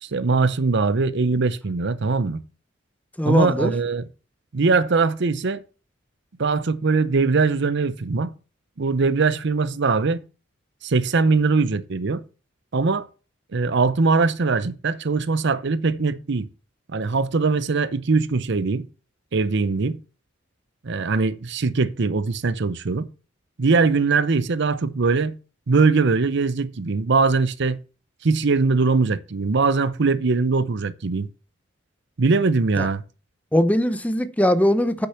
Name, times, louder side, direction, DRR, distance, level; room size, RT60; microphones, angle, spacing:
voice 1, 0.0-2.4 3.2-4.0 4.5-5.6 6.4-8.3 8.8-10.2 10.8-12.2 12.7-13.1 13.5-16.5 16.9-18.9 19.3-20.0 20.8-23.1 23.6-25.3 25.7-27.8 28.2-31.3 32.2-33.0, right 4 dB, 60° right, 0.7 m, -21 dB
voice 2, 3.2-3.7 32.8-32.9 33.5-35.1, equal, 5° left, 0.7 m, -20 dB
8.6 x 6.6 x 5.7 m
head